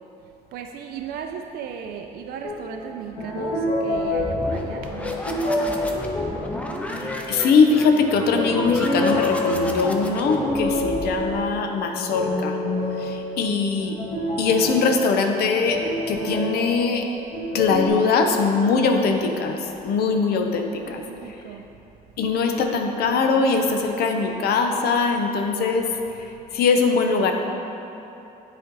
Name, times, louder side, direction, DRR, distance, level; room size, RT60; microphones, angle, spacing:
voice 1, 0.5-5.0 20.8-21.7, right 7 dB, 65° right, 4 dB, 0.4 m, -36 dB
sound 1, 2.4-2.7 3.2-7.7 8.2-17.9, left 1 dB, 90° left, 1.4 m, -28 dB
sound 2, 3.9-11.6, left 1 dB, 10° left, 0.5 m, -33 dB
voice 2, 7.0-12.6 13.0-13.9 14.4-15.8 16.1-17.1 17.5-21.0 21.3-21.4 22.2-25.9 26.2-27.3, left 4 dB, 70° left, 4 dB, 0.6 m, -21 dB
7.8 x 4.3 x 3.8 m, 2.9 s
cardioid pair, 110°, 17 cm